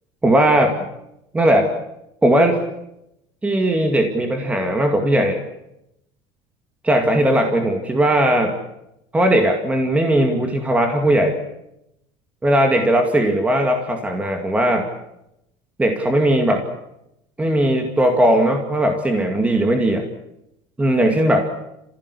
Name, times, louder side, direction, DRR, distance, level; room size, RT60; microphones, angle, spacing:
voice 1, 0.2-0.9 1.3-1.7 2.2-2.6 3.4-5.4 6.8-8.6 9.1-11.4 12.4-14.9 15.8-16.6 17.4-20.0 20.8-21.5, right 1 dB, 10° right, 4 dB, 2.2 m, -18 dB
29.5 x 16.0 x 8.5 m, 0.83 s
cardioid pair, 145°, 13 cm